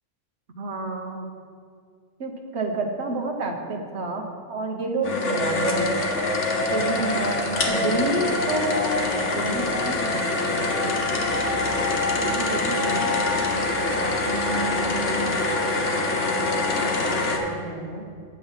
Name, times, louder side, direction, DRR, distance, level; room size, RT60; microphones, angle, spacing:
voice 1, 0.6-1.2 2.2-5.9 6.7-11.1 12.1-13.2 14.3-15.4 16.7-18.1, right 2 dB, 65° right, 3 dB, 1.3 m, -30 dB
sound 1, 5.0-17.4, left 2 dB, 75° left, 1.4 m, -24 dB
8.8 x 7.8 x 5.6 m, 2.3 s
omnidirectional pair, 1.2 m